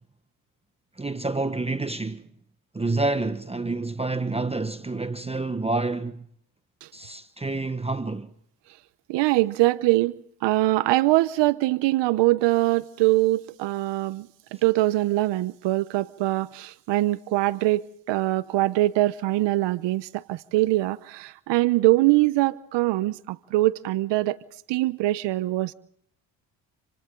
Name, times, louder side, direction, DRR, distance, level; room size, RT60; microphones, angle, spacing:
voice 1, 1.0-2.3 2.7-6.3 6.9-8.3, right 3 dB, 15° right, 1.1 m, -28 dB
voice 2, 9.1-10.2 10.4-14.3 14.6-24.4 24.7-25.7, right 18 dB, 75° right, 0.9 m, -23 dB
28.5 x 27.0 x 3.8 m
supercardioid pair, 75°, 44 cm